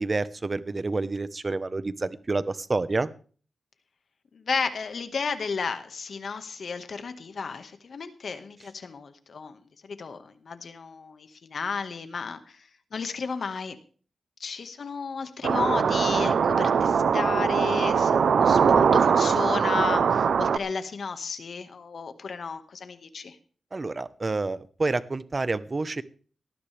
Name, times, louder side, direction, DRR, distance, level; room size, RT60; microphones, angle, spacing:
voice 1, 0.0-3.1 23.7-26.0, right 3 dB, 40° right, 14 dB, 1.1 m, -28 dB
voice 2, 4.3-13.8 14.4-23.4, left 5 dB, 70° left, 9 dB, 1.7 m, -33 dB
sound 1, 15.4-20.6, right 6 dB, 85° right, 0.8 m, -21 dB
18.5 x 13.5 x 3.5 m, 0.41 s
cardioid pair, 60°, 0 cm